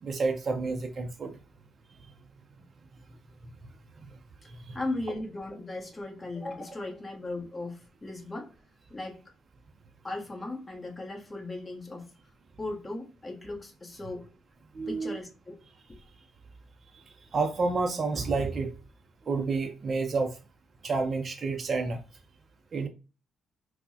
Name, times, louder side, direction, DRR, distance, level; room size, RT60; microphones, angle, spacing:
voice 1, 0.0-1.4 4.0-4.2 4.5-4.8 14.7-15.2 16.9-18.7 19.3-20.4 20.8-22.0 22.7-22.9, right 4 dB, 45° right, 0.4 m, -30 dB
voice 2, 4.4-8.5 8.9-9.2 10.0-12.1 12.6-14.2 14.9-15.6 15.9-16.0, left 2 dB, 20° left, 1.0 m, -37 dB
4.3 x 2.0 x 2.7 m
cardioid pair, 90°, 0 cm